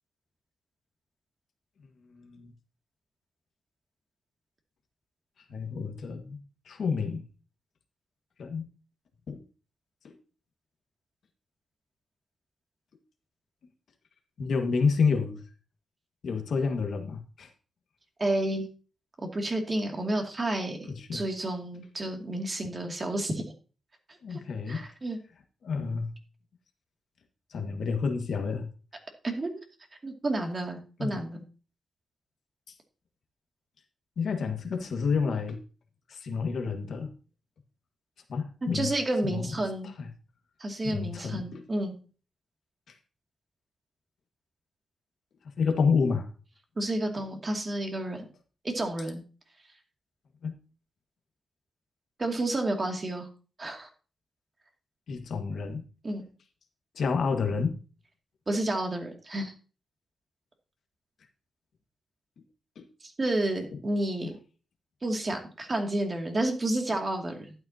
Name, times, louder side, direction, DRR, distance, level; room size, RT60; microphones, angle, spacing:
voice 1, 1.8-2.5 5.5-6.4 6.6-7.2 8.4-8.7 9.3-9.4 10.0-10.2 14.4-15.4 16.2-17.5 20.9-21.2 24.2-24.8 25.6-26.1 27.5-28.7 31.0-31.2 32.7-32.8 34.2-35.6 36.1-37.1 38.3-38.9 39.2-39.5 40.0-40.1 40.8-41.6 42.9-43.0 45.6-46.3 50.4-50.5 55.1-55.8 56.9-57.8 62.7-62.8 63.7-63.8 64.2-64.3, left 5 dB, 70° left, 4 dB, 1.7 m, -29 dB
voice 2, 18.2-18.7 19.2-20.8 21.1-23.5 24.3-24.4 24.7-25.2 29.2-29.6 30.0-31.4 38.7-39.9 40.6-42.0 46.8-48.3 48.6-49.2 52.2-53.3 53.6-53.9 56.0-56.3 58.5-59.5 63.0-64.3 65.0-67.5, right 1 dB, 35° right, 2 dB, 2.4 m, -30 dB
12.0 x 9.2 x 2.9 m, 0.37 s
cardioid pair, 90°, 0 cm